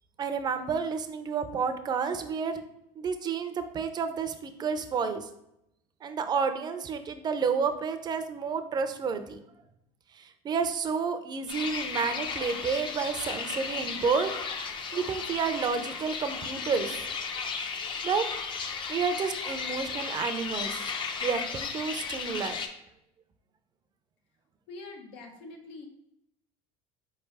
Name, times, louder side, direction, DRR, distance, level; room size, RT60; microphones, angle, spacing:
voice 1, 0.2-2.6 3.0-5.2 6.0-9.4 10.4-14.3 14.9-17.0 18.0-18.2 18.9-20.7 21.2-22.6, right 5 dB, 30° right, 8 dB, 0.5 m, -30 dB
sound 1, 11.5-22.7, left 5 dB, 35° left, 0.5 m, -35 dB
voice 2, 24.7-25.9, left 3 dB, 90° left, 2 dB, 1.0 m, -44 dB
4.3 x 3.2 x 3.4 m, 0.80 s
supercardioid pair, 120°, 14 cm